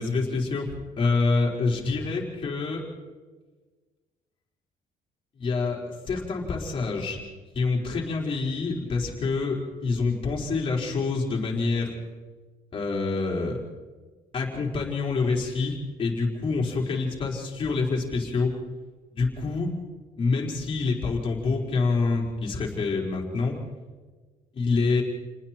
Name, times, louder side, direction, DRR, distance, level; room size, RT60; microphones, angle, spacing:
voice 1, 0.0-2.8 5.4-7.2 7.5-11.9 12.7-13.6 14.3-18.5 19.1-19.7 20.2-23.6 24.5-25.0, left 4 dB, 35° left, -2 dB, 4.9 m, -26 dB
29.5 x 20.0 x 4.6 m, 1.4 s
cardioid pair, 145°, 15 cm